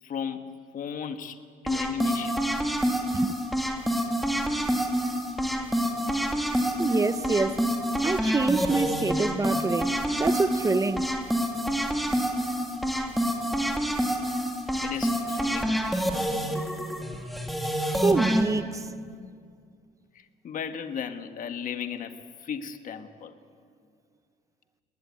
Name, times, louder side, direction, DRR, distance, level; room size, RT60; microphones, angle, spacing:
voice 1, 0.0-2.5 7.2-7.3 14.8-15.8 20.1-23.3, left 7 dB, 50° left, 1.6 m, -35 dB
sound 1, 1.7-18.4, equal, ahead, 2.7 m, -27 dB
voice 2, 6.8-7.6 8.0-11.1 18.0-18.8, right 3 dB, 20° right, 0.8 m, -26 dB
21.5 x 20.5 x 9.6 m
cardioid pair, 110°, 17 cm